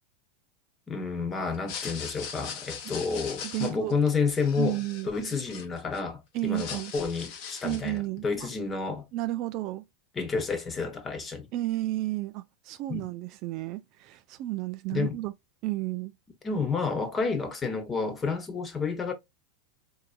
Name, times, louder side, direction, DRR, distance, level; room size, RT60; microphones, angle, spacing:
voice 1, 0.9-4.8 5.1-9.1 10.2-11.5 12.9-13.1 14.9-15.2 16.4-19.1, left 4 dB, 20° left, 1.1 m, -30 dB
sound 1, 1.5-6.0 6.4-8.0, left 7 dB, 45° left, 0.9 m, -40 dB
voice 2, 3.4-4.0 4.6-5.1 6.3-6.9 7.6-8.5 9.1-9.9 11.5-15.3 15.6-16.1, right 16 dB, 45° right, 0.4 m, -32 dB
4.5 x 2.7 x 2.3 m
figure-of-eight pair, 90°, 0 cm